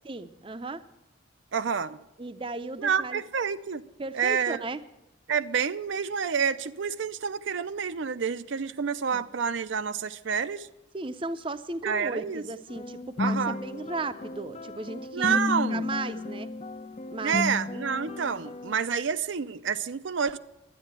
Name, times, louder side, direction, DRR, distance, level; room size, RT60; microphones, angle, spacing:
voice 1, 0.0-0.8 2.2-3.2 4.0-4.8 9.1-9.2 10.9-15.4 15.7-16.5 17.1-17.5, right 3 dB, 25° right, 0.5 m, -35 dB
voice 2, 1.5-2.0 2.8-3.8 4.1-4.6 5.3-10.7 11.8-12.4 13.2-13.6 15.1-15.9 17.2-20.4, right 6 dB, 75° right, 0.5 m, -28 dB
sound 1, 12.7-18.7, left 3 dB, 30° left, 0.4 m, -33 dB
12.0 x 9.7 x 8.9 m
head